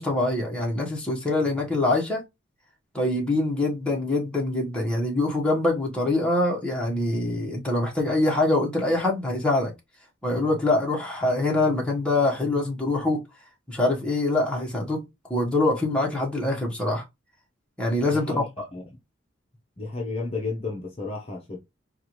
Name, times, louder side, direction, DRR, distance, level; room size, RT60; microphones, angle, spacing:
voice 1, 0.0-2.2 2.9-9.7 10.2-13.2 13.7-15.0 15.3-17.0 17.8-18.3, left 2 dB, 5° left, 1.2 m, -24 dB
voice 2, 18.0-19.0 19.8-21.6, left 3 dB, 30° left, 0.8 m, -33 dB
4.6 x 2.4 x 3.0 m
head